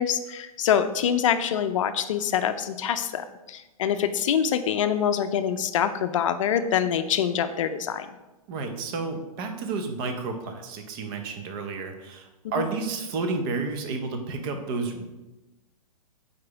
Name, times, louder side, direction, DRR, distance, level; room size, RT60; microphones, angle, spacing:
voice 1, 0.0-8.1 12.4-12.6, left 8 dB, 55° left, 9 dB, 0.5 m, -25 dB
voice 2, 8.5-15.0, right 4 dB, 35° right, 5 dB, 0.8 m, -31 dB
4.7 x 4.3 x 4.8 m, 1.0 s
hypercardioid pair, 145°, 19 cm